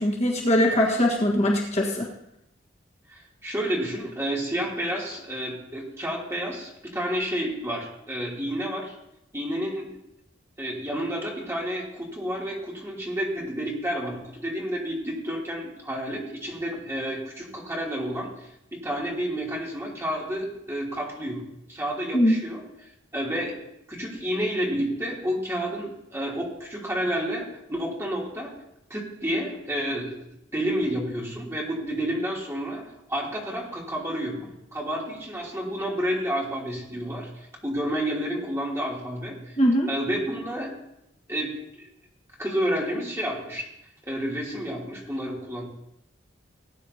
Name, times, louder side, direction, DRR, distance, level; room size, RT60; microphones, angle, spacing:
voice 1, 0.0-2.1 22.1-22.4 39.6-39.9, equal, 35° left, -1 dB, 1.5 m, -21 dB
voice 2, 3.1-8.9 9.3-9.9 10.6-22.6 23.1-23.5 23.9-28.5 28.9-30.2 30.5-32.8 33.1-39.6 39.9-40.7 41.3-41.6 42.4-43.7 44.1-45.6, equal, 15° right, -4 dB, 3.0 m, -30 dB
19.0 x 9.5 x 2.8 m, 0.84 s
head